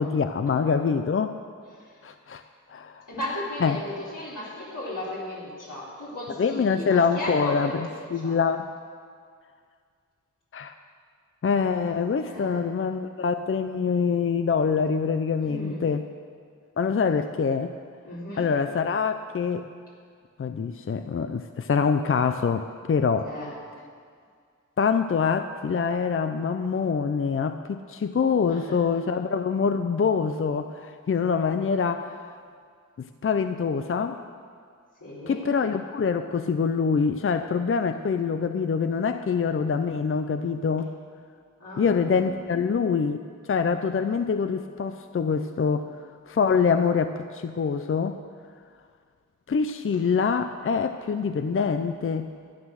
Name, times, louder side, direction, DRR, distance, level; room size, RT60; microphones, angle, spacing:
voice 1, 0.0-1.4 2.0-2.4 2.7-3.0 3.6-3.8 6.4-7.7 8.1-8.7 10.5-10.7 11.4-16.0 16.8-17.7 18.3-19.7 20.4-23.3 24.8-32.4 33.0-34.2 35.3-40.9 41.8-43.2 43.5-45.9 46.3-48.2 49.5-52.3, left 5 dB, 45° left, 9 dB, 0.5 m, -25 dB
voice 2, 3.1-8.4 12.2-12.6 15.4-15.9 18.0-18.5 23.3-23.5 28.5-28.8 35.0-35.4 41.6-42.4, left 1 dB, 80° left, -7 dB, 3.8 m, -35 dB
13.0 x 9.8 x 6.4 m, 2.1 s
wide cardioid pair, 100°, 31 cm